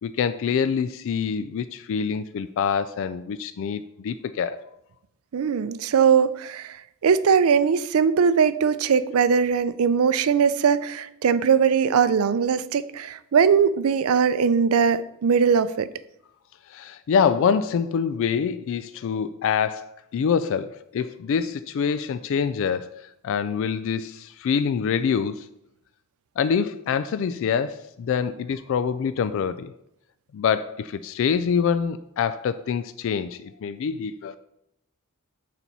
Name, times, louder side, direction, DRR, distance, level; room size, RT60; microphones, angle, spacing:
voice 1, 0.0-4.6 16.7-25.5 26.4-29.7 30.3-34.4, left 6 dB, 65° left, 0.3 m, -25 dB
voice 2, 5.3-6.8 7.0-15.9, right 6 dB, 80° right, 0.4 m, -20 dB
6.9 x 4.2 x 5.9 m
head